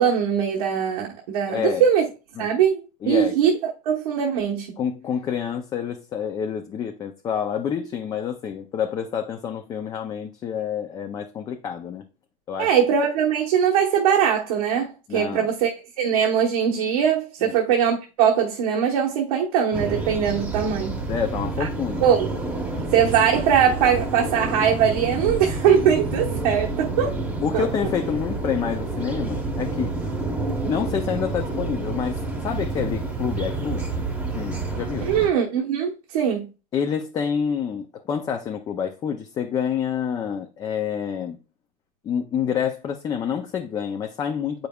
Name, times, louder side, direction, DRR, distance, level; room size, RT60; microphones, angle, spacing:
voice 1, 0.0-2.0 2.4-3.6 3.8-4.8 12.6-15.7 16.0-21.0 21.6-21.7 22.0-22.4 22.9-27.1 27.5-27.6 30.6-30.7 35.0-36.5, right 8 dB, 75° right, 1.1 m, -21 dB
voice 2, 1.5-1.8 2.4-2.5 3.0-3.4 4.8-12.1 12.5-12.7 15.1-15.5 17.4-17.6 21.1-22.1 22.8-22.9 27.4-30.2 30.7-34.1 34.3-35.2 36.7-41.4 42.0-44.7, left 8 dB, 20° left, 0.4 m, -28 dB
sound 1, 19.7-35.3, right 2 dB, 5° right, 0.9 m, -29 dB
8.0 x 5.1 x 2.3 m
supercardioid pair, 155°, 19 cm